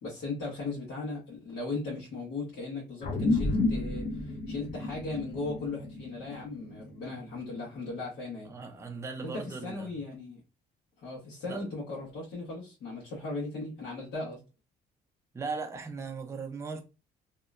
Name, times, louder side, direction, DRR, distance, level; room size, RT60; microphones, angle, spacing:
voice 1, 0.0-8.5 9.2-9.3 9.6-10.4 11.0-14.4, left 3 dB, 80° left, 1.2 m, -37 dB
sound 1, 3.0-7.8, left 2 dB, 45° left, 0.6 m, -31 dB
voice 2, 8.4-10.0 11.5-11.7 15.3-16.8, right 4 dB, 15° right, 0.5 m, -38 dB
2.8 x 2.1 x 2.4 m
cardioid pair, 110°, 17 cm